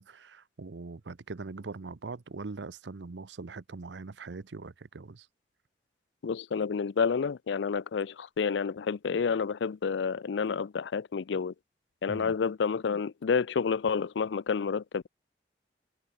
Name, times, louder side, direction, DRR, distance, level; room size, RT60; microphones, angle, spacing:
voice 1, 0.0-5.3 12.1-12.3, right 3 dB, 85° right, 0.7 m, -42 dB
voice 2, 6.2-11.5 12.0-15.1, left 5 dB, 85° left, 0.4 m, -29 dB
head